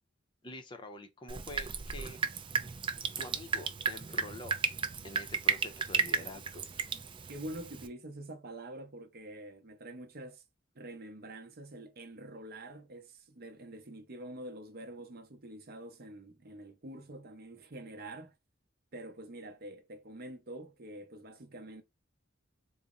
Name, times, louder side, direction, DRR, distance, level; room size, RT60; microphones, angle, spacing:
voice 1, 0.4-2.2 3.2-4.6 5.0-6.7, left 1 dB, 25° left, 0.6 m, -46 dB
Drip, 1.3-7.9, right 5 dB, 25° right, 0.4 m, -34 dB
voice 2, 7.3-10.4 10.7-18.3 18.9-21.8, right 1 dB, 50° right, 0.7 m, -46 dB
4.0 x 2.0 x 3.6 m
head